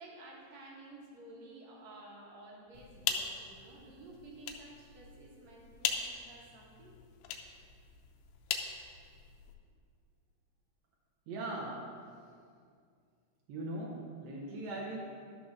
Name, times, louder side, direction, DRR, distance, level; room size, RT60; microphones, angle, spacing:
voice 1, 0.0-6.9, right 2 dB, 55° right, -2 dB, 2.1 m, -52 dB
sound 1, 2.7-9.6, left 7 dB, 85° left, 2.6 m, -40 dB
voice 2, 11.3-12.0 13.5-15.0, right 2 dB, 75° right, -3 dB, 1.6 m, -40 dB
12.5 x 4.3 x 5.9 m, 2.2 s
omnidirectional pair, 4.6 m